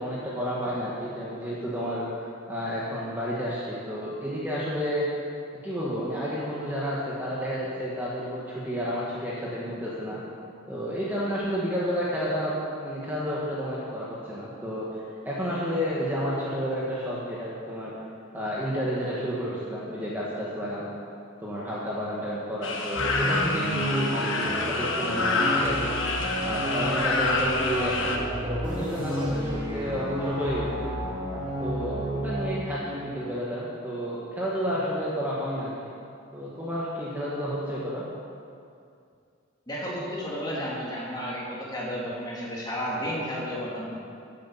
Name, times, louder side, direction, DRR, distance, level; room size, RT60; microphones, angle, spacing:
voice 1, 0.0-2.1 2.5-5.1 5.6-10.2 10.7-17.9 18.3-20.9 21.4-25.9 26.4-30.9 31.4-35.7 36.3-38.0, equal, 10° right, -7 dB, 1.5 m, -31 dB
sound 1, 22.6-28.2, left 3 dB, 65° left, 1.3 m, -27 dB
sound 2, 23.0-32.4, equal, 25° right, 2.7 m, -31 dB
voice 2, 39.7-43.9, equal, 20° left, -6 dB, 2.9 m, -32 dB
14.0 x 8.4 x 5.7 m, 2.4 s
head